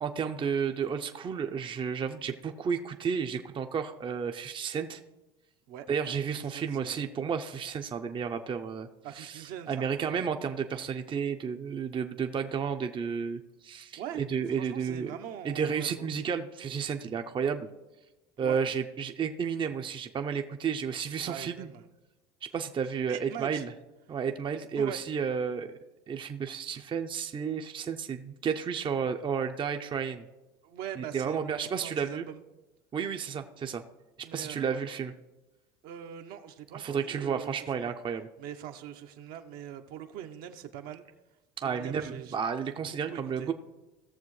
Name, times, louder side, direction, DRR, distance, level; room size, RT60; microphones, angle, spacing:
voice 1, 0.0-5.0 5.9-8.9 9.1-15.1 15.4-17.7 18.4-21.7 22.4-23.7 24.1-25.7 26.1-30.3 31.0-32.2 32.9-33.8 34.3-35.1 36.7-38.3 41.6-43.5, right 6 dB, 30° right, 6 dB, 0.6 m, -32 dB
voice 2, 6.5-7.0 9.0-10.1 14.0-16.3 18.4-18.6 21.3-21.9 23.1-23.6 24.8-25.0 30.6-32.4 34.2-34.8 35.8-37.9 38.4-41.0 41.6-42.4 42.9-43.5, right 10 dB, 65° right, 5 dB, 0.9 m, -42 dB
17.5 x 6.8 x 3.2 m, 1.1 s
supercardioid pair, 90°, 17 cm